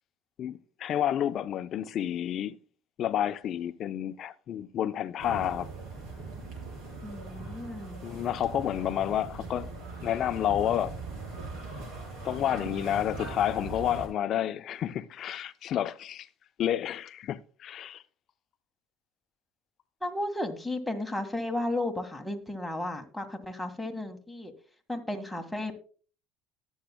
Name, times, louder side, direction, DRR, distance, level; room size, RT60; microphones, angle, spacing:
voice 1, 0.4-2.6 3.0-5.7 8.0-9.7 10.0-10.9 12.2-16.3 16.6-18.0, left 10 dB, 50° left, 0.6 m, -30 dB
sound 1, 5.2-14.1, right 3 dB, 55° right, 5.7 m, -40 dB
voice 2, 7.0-8.0 20.0-24.5 24.9-25.8, left 1 dB, 5° left, 1.8 m, -34 dB
19.0 x 7.2 x 2.2 m
hypercardioid pair, 75°, 0 cm